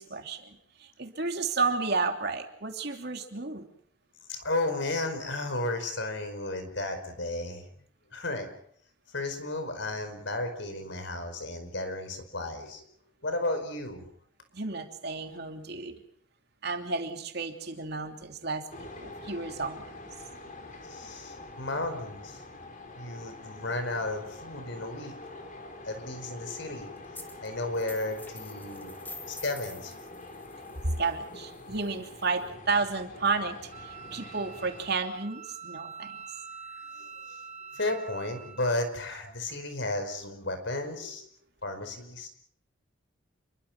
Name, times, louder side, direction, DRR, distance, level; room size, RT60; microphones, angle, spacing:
voice 1, 0.0-3.7 14.5-15.9 16.6-19.8 31.0-36.2, right 4 dB, 55° right, 4 dB, 3.0 m, -32 dB
voice 2, 4.3-7.7 8.1-8.5 9.1-12.8 13.2-14.0 20.9-22.4 23.0-25.1 25.8-26.9 27.4-28.9 29.3-29.9 36.9-37.4 37.7-41.2 41.6-42.3, left 2 dB, 65° left, 8 dB, 5.0 m, -33 dB
sound 1, 18.7-35.0, left 2 dB, 40° left, 4.4 m, -45 dB
sound 2, 27.1-27.5 27.7-32.5, left 3 dB, 10° left, 2.7 m, -48 dB
Wind instrument woodwind instrument, 33.7-38.9, right 6 dB, 35° right, 1.8 m, -45 dB
28.5 x 23.0 x 6.0 m, 0.65 s
head